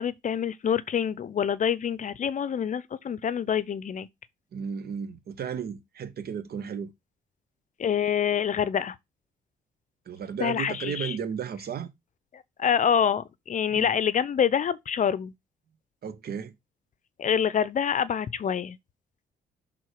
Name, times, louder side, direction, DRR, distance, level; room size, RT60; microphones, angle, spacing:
voice 1, 0.0-4.1 7.8-9.0 10.4-11.2 12.3-15.3 17.2-18.8, left 8 dB, 45° left, 0.6 m, -26 dB
voice 2, 4.5-6.9 10.1-11.9 13.7-13.9 16.0-16.5, right 7 dB, 60° right, 1.1 m, -34 dB
6.3 x 3.7 x 4.6 m
cardioid pair, 105°, 18 cm